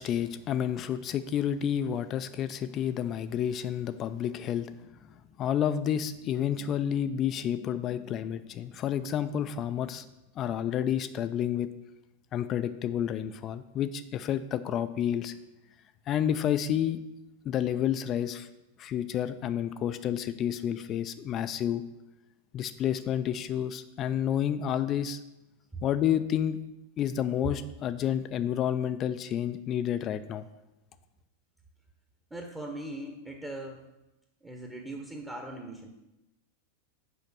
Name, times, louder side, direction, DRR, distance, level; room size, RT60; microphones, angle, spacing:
voice 1, 0.0-4.7 5.4-10.1 10.4-11.7 12.3-15.3 16.1-17.0 17.5-18.5 18.8-21.8 22.5-25.2 25.8-26.6 27.0-30.5, left 9 dB, 30° left, 11 dB, 0.4 m, -30 dB
voice 2, 32.3-33.8 34.4-35.9, right 1 dB, 10° right, 2 dB, 0.9 m, -40 dB
6.3 x 5.2 x 6.2 m, 0.96 s
figure-of-eight pair, 90°, 0 cm